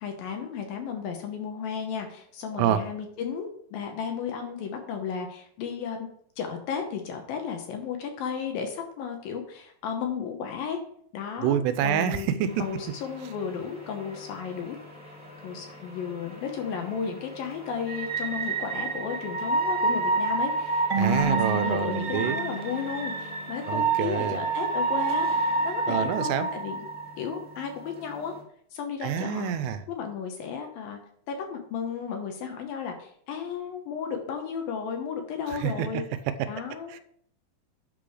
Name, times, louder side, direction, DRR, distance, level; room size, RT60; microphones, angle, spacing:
voice 1, 0.0-6.1 6.4-10.8 11.1-12.3 12.6-14.8 15.4-26.9 27.2-28.3 28.7-29.5 29.9-31.0 31.3-36.0 36.5-36.9, left 6 dB, 70° left, 4 dB, 2.5 m, -34 dB
voice 2, 11.4-12.5 21.0-22.4 23.7-24.4 25.9-26.5 29.0-29.8 35.5-35.9 36.9-37.0, right 9 dB, 90° right, 11 dB, 2.8 m, -27 dB
sound 1, 12.5-28.4, right 3 dB, 5° right, 1.8 m, -30 dB
Marimba xylophone / Wood, 20.9-23.6, right 5 dB, 60° right, 3.0 m, -31 dB
8.5 x 6.2 x 4.9 m, 0.64 s
omnidirectional pair, 4.8 m